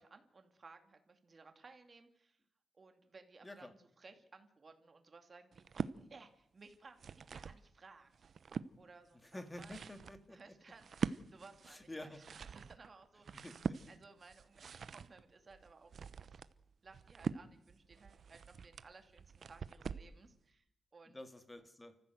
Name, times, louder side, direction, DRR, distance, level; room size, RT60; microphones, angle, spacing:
voice 1, 0.0-2.4 2.7-8.3 8.8-9.8 10.3-13.5 13.9-16.0 16.8-20.7 20.9-21.2, right 4 dB, 35° right, 6 dB, 2.6 m, -59 dB
sound 1, 5.5-6.0 6.7-7.6 8.1-8.7 9.3-20.1, right 6 dB, 55° right, 0.8 m, -44 dB
voice 2, 9.3-10.5 11.7-12.2 13.3-13.8 21.1-22.0, left 1 dB, 15° left, 8 dB, 2.2 m, -50 dB
29.0 x 15.0 x 8.0 m, 0.76 s
wide cardioid pair, 135°, 0 cm